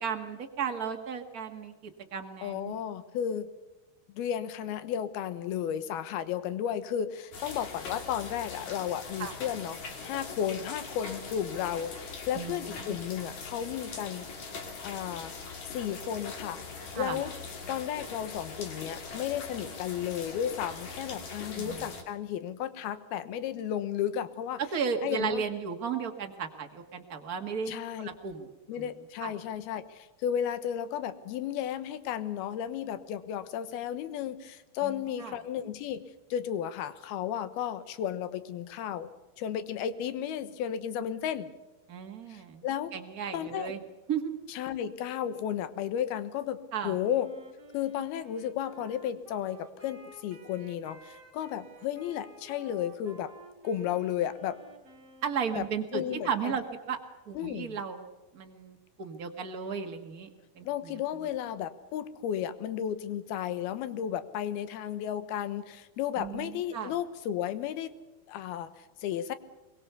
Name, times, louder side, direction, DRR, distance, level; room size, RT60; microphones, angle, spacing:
voice 1, 0.0-1.7 2.1-2.8 9.2-9.3 12.3-13.0 16.9-17.2 21.6-21.8 24.6-28.5 28.8-28.9 29.2-29.3 34.8-35.3 41.9-42.6 42.9-43.8 44.1-44.3 46.7-47.0 55.2-57.0 57.3-58.1 58.3-60.3 60.6-60.9 66.2-66.9, right 6 dB, 75° right, 4 dB, 0.8 m, -34 dB
voice 2, 2.4-3.5 4.2-14.3 14.8-15.3 15.7-16.6 17.0-17.3 17.7-24.6 25.0-25.4 27.7-28.1 28.7-36.0 36.3-39.1 39.4-41.5 42.3-42.9 43.3-43.8 44.5-47.3 47.7-53.3 53.6-54.6 55.6-55.7 55.9-56.5 57.3-57.8 60.6-68.0 68.3-69.4, left 10 dB, 80° left, 13 dB, 3.0 m, -33 dB
sound 1, 7.3-22.0, left 4 dB, 50° left, 3.7 m, -42 dB
Wind instrument woodwind instrument, 47.0-55.9, right 1 dB, 40° right, 3.8 m, -54 dB
23.0 x 22.0 x 6.8 m, 1.1 s
omnidirectional pair, 4.5 m